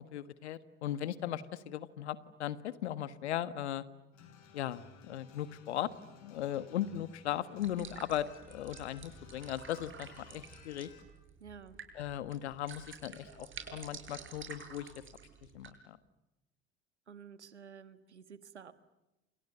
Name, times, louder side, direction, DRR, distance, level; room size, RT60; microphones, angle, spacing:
voice 1, 0.0-3.8 4.5-5.9 6.2-10.9 11.9-14.9 15.5-15.7, left 11 dB, 75° left, 15 dB, 1.5 m, -38 dB
sound 1, 4.1-11.0, left 7 dB, 55° left, 7.0 m, -57 dB
sound 2, 7.6-15.7, right 6 dB, 35° right, 7.4 m, -50 dB
voice 2, 11.4-11.8 17.1-18.7, right 7 dB, 90° right, 13 dB, 1.5 m, -51 dB
29.5 x 28.5 x 6.8 m, 1.0 s
figure-of-eight pair, 65°, 33 cm